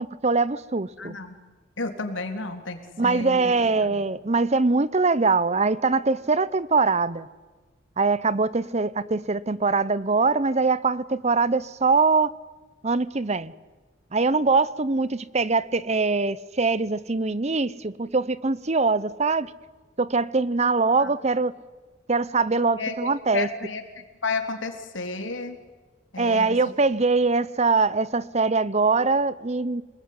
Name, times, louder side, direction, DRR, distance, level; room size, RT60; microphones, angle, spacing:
voice 1, 0.0-1.1 3.0-7.3 8.0-12.3 12.8-13.5 14.1-19.5 20.0-21.5 22.1-23.5 26.2-29.8, right 4 dB, 35° right, 0.8 m, -23 dB
voice 2, 1.0-1.4 1.8-4.1 21.0-21.1 22.8-25.6 26.1-26.6, left 3 dB, 90° left, 3.7 m, -32 dB
29.0 x 20.5 x 9.6 m
head